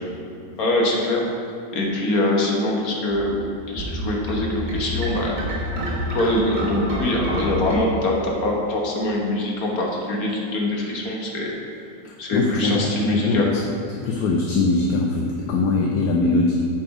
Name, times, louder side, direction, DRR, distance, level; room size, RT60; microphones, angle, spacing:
voice 1, 0.6-1.3 1.7-3.4 3.7-5.4 6.1-11.5 12.2-13.5, left 1 dB, 55° left, -2 dB, 1.7 m, -23 dB
sound 1, 3.1-7.8, equal, 25° right, 1.5 m, -28 dB
voice 2, 12.0-12.9 13.1-16.7, left 3 dB, 75° left, -1 dB, 1.2 m, -22 dB
8.7 x 5.1 x 4.9 m, 2.5 s
omnidirectional pair, 1.9 m